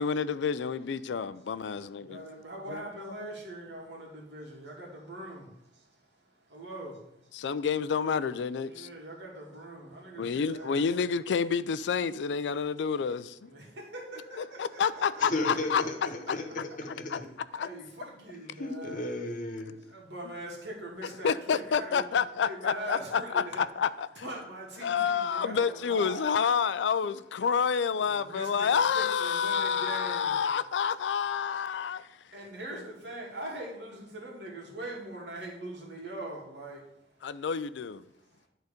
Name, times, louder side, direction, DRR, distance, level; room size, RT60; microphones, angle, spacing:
voice 1, 0.0-2.2 2.7-2.8 7.3-8.9 10.2-13.5 14.6-15.8 16.3-16.4 17.1-17.2 17.5-17.7 21.2-24.3 24.8-32.0 37.2-38.0, left 6 dB, 80° left, 0.4 m, -29 dB
voice 2, 2.0-6.0 6.5-7.3 8.7-10.8 13.5-15.2 16.7-16.8 17.5-19.0 19.8-22.1 22.4-23.7 24.2-26.3 28.0-30.3 32.3-36.9, right 1 dB, 80° right, 2.2 m, -42 dB
voice 3, 15.2-16.4 16.8-17.3 18.6-19.7, left 2 dB, 50° left, 1.2 m, -34 dB
10.5 x 4.0 x 5.1 m
head